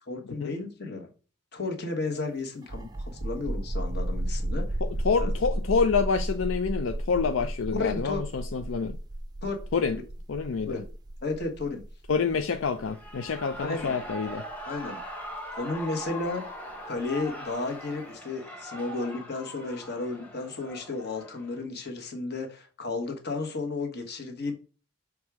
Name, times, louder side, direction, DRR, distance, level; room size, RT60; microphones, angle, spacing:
voice 1, 0.1-1.1 1.5-2.9 3.2-4.7 5.2-5.3 7.8-8.2 9.4-9.6 10.7-10.8 11.2-11.8 13.6-13.9 14.7-15.0 15.6-16.5 16.9-24.5, left 3 dB, 50° left, 1.4 m, -33 dB
sound 1, 2.6-16.0, right 1 dB, 20° right, 0.5 m, -33 dB
voice 2, 4.8-9.0 9.7-10.0 10.3-10.8 12.1-14.4, left 5 dB, 80° left, 0.5 m, -27 dB
Shout / Cheering, 12.7-21.6, equal, 5° left, 1.1 m, -41 dB
6.3 x 3.6 x 4.8 m
head